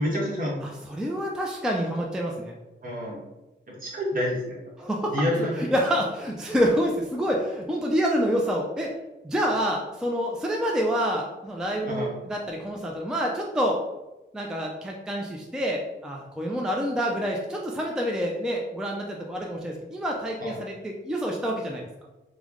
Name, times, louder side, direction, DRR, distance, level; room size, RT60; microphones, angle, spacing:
voice 1, 0.0-0.6 2.8-3.2 3.7-4.6 5.1-5.7 11.9-12.1 20.4-20.6, left 1 dB, 45° right, -4 dB, 1.1 m, -28 dB
voice 2, 0.6-2.5 4.8-8.9 9.2-13.8 14.3-21.9, equal, 5° right, 0 dB, 0.3 m, -27 dB
3.2 x 2.0 x 3.6 m, 1.0 s
wide cardioid pair, 120°, 19 cm